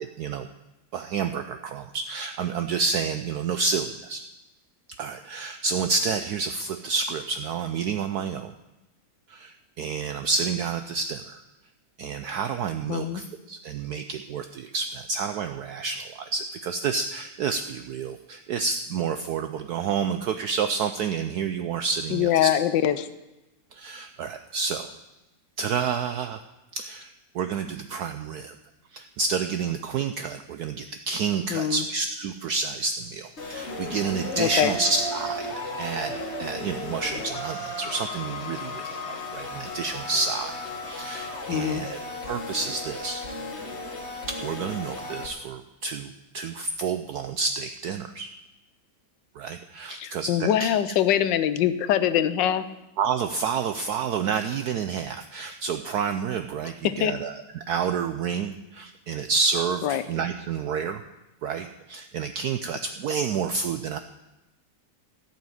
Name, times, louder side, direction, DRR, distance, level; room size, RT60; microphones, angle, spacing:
voice 1, 0.2-0.5 0.9-4.2 5.0-8.5 9.3-11.4 12.0-22.5 23.7-24.9 25.6-26.4 26.7-28.5 28.9-35.4 35.8-36.1 36.4-40.5 40.8-43.2 44.4-48.3 49.4-50.7 53.0-61.0 61.4-64.0, right 5 dB, 70° right, 9 dB, 0.9 m, -29 dB
voice 2, 12.9-13.2 22.1-23.1 31.5-31.8 34.4-34.7 41.5-41.9 50.0-52.6 56.8-57.1 59.8-60.0, left 10 dB, 70° left, 13 dB, 1.3 m, -23 dB
sound 1, 33.4-45.3, left 1 dB, 35° left, 1.7 m, -35 dB
13.5 x 5.8 x 9.1 m, 0.99 s
omnidirectional pair, 2.1 m